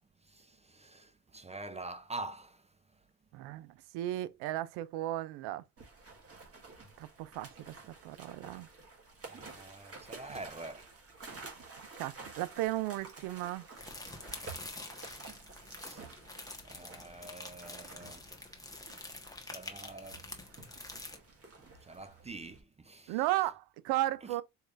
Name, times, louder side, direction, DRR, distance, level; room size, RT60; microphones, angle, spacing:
voice 1, 0.2-2.6 9.3-10.9 15.8-16.1 16.7-18.2 19.5-20.2 21.6-23.2 24.2-24.3, right 2 dB, 15° right, 0.4 m, -46 dB
voice 2, 3.3-5.6 7.0-8.7 12.0-13.7 23.1-24.4, right 15 dB, 80° right, 0.5 m, -35 dB
sound 1, 5.8-22.6, right 3 dB, 35° right, 1.6 m, -51 dB
sound 2, 13.8-21.2, left 2 dB, 10° left, 1.2 m, -47 dB
4.7 x 3.2 x 2.4 m
supercardioid pair, 65°, 39 cm